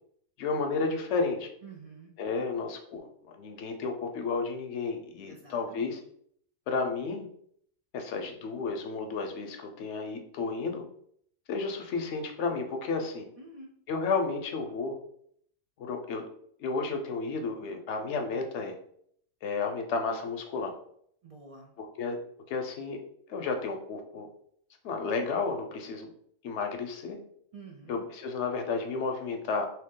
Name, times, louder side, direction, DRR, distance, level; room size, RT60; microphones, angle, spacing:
voice 1, 0.4-1.5 2.2-6.0 6.7-7.3 7.9-10.8 11.5-13.3 13.9-15.0 15.8-16.2 16.6-18.7 19.4-20.7 21.8-22.2 22.5-23.0 23.3-24.3 24.8-26.1 26.4-27.2 27.9-29.7, left 4 dB, 70° left, 5 dB, 0.9 m, -32 dB
voice 2, 1.6-2.1 5.3-5.9 13.4-13.7 21.2-21.8 27.5-28.1, right 4 dB, 55° right, -1 dB, 0.4 m, -49 dB
3.0 x 2.8 x 3.6 m, 0.66 s
omnidirectional pair, 1.3 m